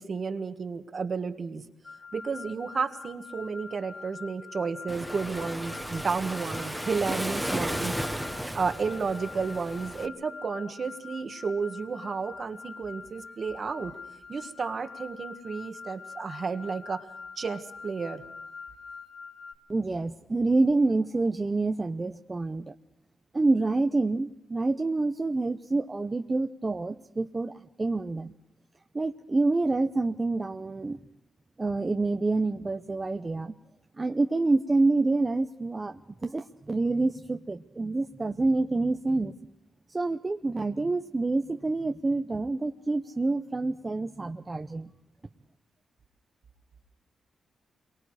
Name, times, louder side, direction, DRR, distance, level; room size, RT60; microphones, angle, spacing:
voice 1, 0.0-1.6 2.1-7.9 8.2-13.9 14.3-17.1 17.4-18.2, right 5 dB, 40° right, 7 dB, 1.7 m, -32 dB
sound 1, 1.8-19.5, left 4 dB, 35° left, 3.2 m, -45 dB
Waves surf, 4.9-10.1, equal, ahead, 1.3 m, -34 dB
voice 2, 19.7-22.7 23.3-28.3 28.9-31.0 31.6-33.5 34.0-39.3 39.9-44.9, right 3 dB, 20° right, 6 dB, 0.7 m, -27 dB
28.5 x 23.5 x 4.9 m, 0.79 s
cardioid pair, 125°, 0 cm